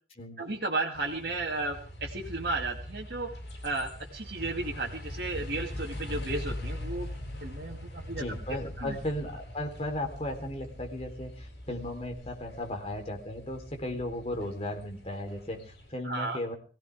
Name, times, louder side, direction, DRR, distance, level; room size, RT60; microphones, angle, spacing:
voice 1, 0.4-3.3 3.6-7.1 7.4-8.2 8.8-9.0 16.0-16.4, right 2 dB, 60° right, -1 dB, 2.3 m, -34 dB
sound 1, 0.9-15.9, left 1 dB, 70° left, 7.9 m, -42 dB
voice 2, 8.2-16.5, left 1 dB, 35° left, 3 dB, 3.8 m, -36 dB
22.5 x 16.5 x 3.5 m, 0.38 s
head